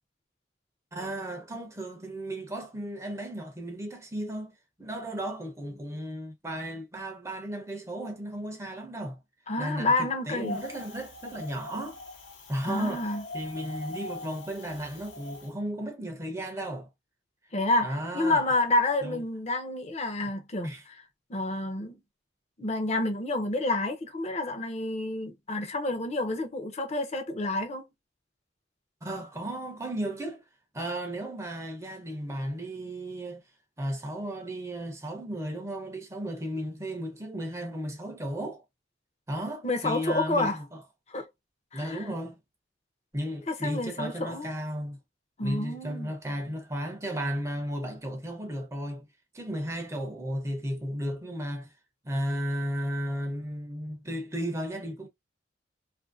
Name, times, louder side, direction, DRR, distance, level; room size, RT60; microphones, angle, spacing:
voice 1, 0.9-9.2 9.6-12.0 12.5-16.9 17.8-18.6 19.0-19.2 20.6-20.8 29.0-30.4 30.7-33.4 33.8-38.6 39.3-40.8 41.7-42.4 43.1-45.0 45.4-49.1 49.3-51.7 52.0-55.1, equal, 15° right, 0.6 m, -34 dB
voice 2, 9.5-10.6 12.6-13.2 17.5-21.0 21.3-22.0 22.6-27.8 39.6-40.6 41.1-41.2 41.7-42.0 43.5-44.5 45.4-46.1, left 2 dB, 35° left, 0.7 m, -29 dB
Wind, 10.4-15.5, left 2 dB, 75° left, 1.0 m, -42 dB
2.7 x 2.5 x 2.5 m
head